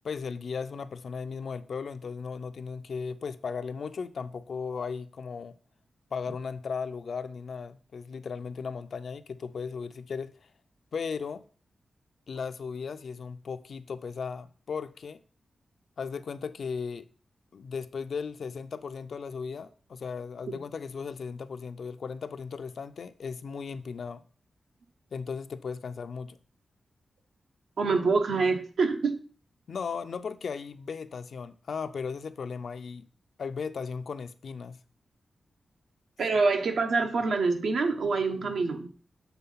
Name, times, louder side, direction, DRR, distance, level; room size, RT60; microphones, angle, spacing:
voice 1, 0.0-5.6 6.1-10.3 10.9-11.4 12.3-15.2 16.0-17.1 17.5-24.2 25.1-26.4 29.7-33.1 33.4-34.8, left 5 dB, 65° left, 0.5 m, -36 dB
voice 2, 27.8-29.2 36.2-38.9, right 4 dB, 80° right, 1.1 m, -26 dB
7.0 x 3.8 x 5.5 m
wide cardioid pair, 125°, 0 cm